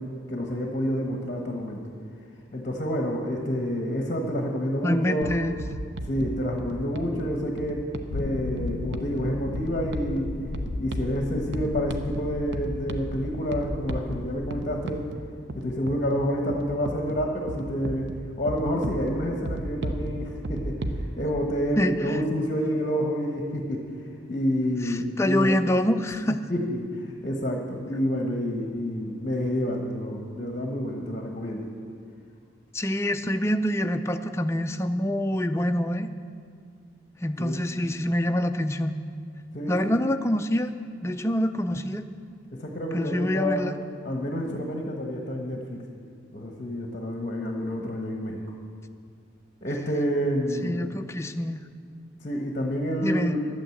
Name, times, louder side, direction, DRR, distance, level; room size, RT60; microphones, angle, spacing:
voice 1, 0.0-1.8 2.5-5.3 6.1-7.8 8.1-10.3 10.8-15.1 15.5-18.1 18.4-23.9 24.3-25.5 26.5-31.7 37.4-37.6 39.5-40.0 42.5-43.6 44.0-45.8 46.3-48.4 49.6-50.8 52.2-53.4, equal, 40° left, 1 dB, 1.1 m, -28 dB
voice 2, 4.8-5.5 21.8-22.2 24.8-26.5 32.7-36.1 37.2-39.0 39.7-40.7 41.0-42.0 42.9-43.8 50.6-51.6 53.0-53.4, left 1 dB, 15° left, 8 dB, 0.4 m, -26 dB
sound 1, 5.2-21.1, right 1 dB, 65° right, 0.7 m, -36 dB
sound 2, 8.1-15.2, left 3 dB, 75° left, 0.5 m, -36 dB
12.0 x 8.9 x 7.8 m, 2.2 s
head